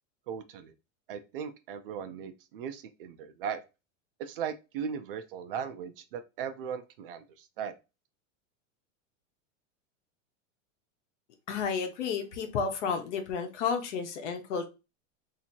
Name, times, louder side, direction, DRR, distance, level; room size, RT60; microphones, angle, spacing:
voice 1, 0.3-0.7 1.1-3.6 4.2-7.7, right 7 dB, 45° right, 0.4 m, -38 dB
voice 2, 11.5-14.7, left 6 dB, 65° left, 1.0 m, -31 dB
2.9 x 2.7 x 4.3 m
supercardioid pair, 175°, 39 cm